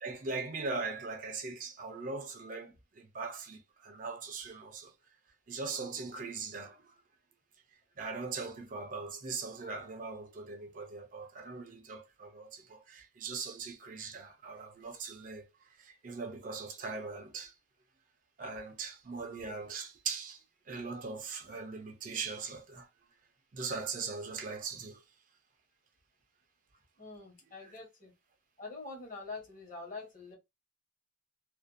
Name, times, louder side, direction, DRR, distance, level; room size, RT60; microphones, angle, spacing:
voice 1, 0.0-4.9 5.5-6.8 8.0-15.5 15.8-17.5 18.4-22.9 23.5-25.0, right 4 dB, 40° right, 0.4 m, -40 dB
voice 2, 27.0-28.1 28.6-30.4, left 3 dB, 40° left, 1.0 m, -45 dB
2.4 x 2.2 x 2.5 m
head